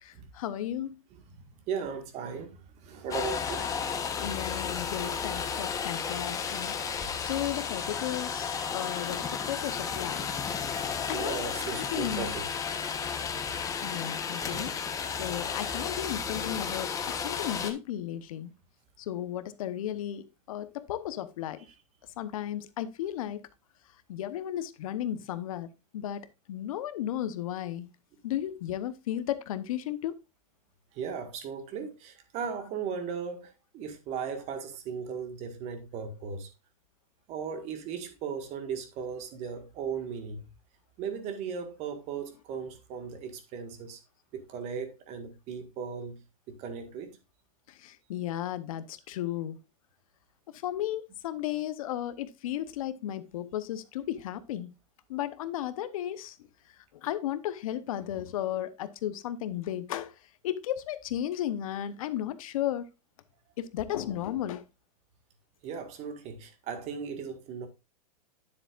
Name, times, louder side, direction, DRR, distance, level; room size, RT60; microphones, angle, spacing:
voice 1, 0.0-0.9 4.2-6.7 7.2-10.4 11.1-11.5 11.8-12.4 13.8-14.7 15.2-16.9 17.2-18.5 19.0-21.6 22.2-23.4 24.1-26.2 26.5-27.9 28.2-30.1 47.7-49.6 50.5-54.7 55.1-56.4 57.0-60.1 60.4-62.9 63.6-64.6, left 11 dB, 65° left, 0.9 m, -34 dB
voice 2, 1.7-3.6 10.8-10.9 11.1-12.4 14.5-14.6 30.9-36.5 37.3-40.5 41.0-44.0 44.3-46.2 46.5-47.1 65.6-67.7, right 6 dB, 35° right, 1.7 m, -37 dB
sound 1, 3.1-17.7, left 6 dB, 15° left, 1.0 m, -33 dB
9.8 x 7.2 x 2.5 m
supercardioid pair, 140°, 19 cm